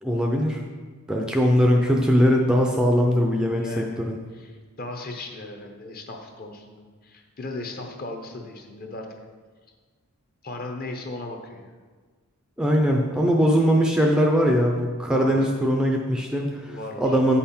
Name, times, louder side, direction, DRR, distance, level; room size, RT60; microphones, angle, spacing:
voice 1, 0.0-0.6 1.1-4.2 12.6-17.4, equal, 5° right, 1 dB, 0.4 m, -21 dB
voice 2, 3.3-4.0 4.3-9.1 10.4-11.7 15.1-15.5 16.7-17.2, left 2 dB, 40° left, 3 dB, 0.9 m, -37 dB
8.4 x 5.7 x 4.3 m, 1.5 s
head